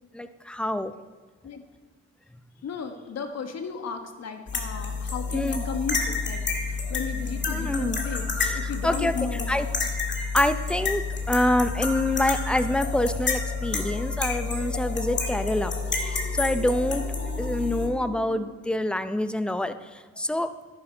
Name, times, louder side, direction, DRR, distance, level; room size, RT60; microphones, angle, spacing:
voice 1, 0.1-0.9 5.3-5.6 7.5-8.0 8.4-9.1 9.5-9.7 10.3-17.0 17.4-20.5, left 1 dB, 5° left, 11 dB, 0.6 m, -26 dB
voice 2, 2.6-9.5, left 6 dB, 60° left, 6 dB, 1.4 m, -35 dB
sound 1, 4.5-17.9, left 4 dB, 35° left, 1.9 m, -29 dB
sound 2, 13.4-18.4, right 1 dB, 75° left, 3.4 m, -43 dB
11.0 x 10.5 x 4.5 m, 1.3 s
cardioid pair, 90°, 30 cm